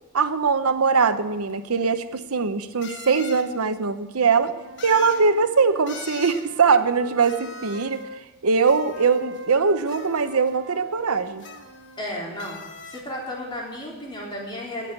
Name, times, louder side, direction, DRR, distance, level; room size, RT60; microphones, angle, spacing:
voice 1, 0.1-4.5 4.8-11.5, right 5 dB, 90° right, 11 dB, 0.8 m, -21 dB
sound 1, 1.5-1.6 2.8-3.5 4.8-5.3 5.9-6.5 7.2-8.0 8.6-9.4 9.9-10.5 11.4-12.1 12.4-13.1, left 5 dB, 55° left, 1.2 m, -41 dB
Wind instrument woodwind instrument, 4.3-8.2 8.9-12.4, right 2 dB, 60° right, 1.1 m, -43 dB
voice 2, 12.0-14.9, left 1 dB, 20° left, -2 dB, 3.5 m, -33 dB
18.5 x 6.3 x 9.0 m, 1.1 s
head